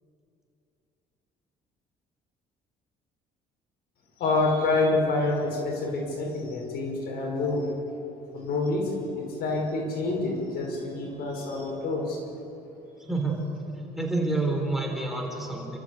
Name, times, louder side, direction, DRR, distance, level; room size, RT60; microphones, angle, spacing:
voice 1, 4.2-7.7 8.3-12.2, left 2 dB, 65° left, 1 dB, 5.7 m, -27 dB
voice 2, 13.9-15.8, right 2 dB, ahead, 0 dB, 4.4 m, -28 dB
28.5 x 14.0 x 8.2 m, 2.8 s
cardioid pair, 110°, 17 cm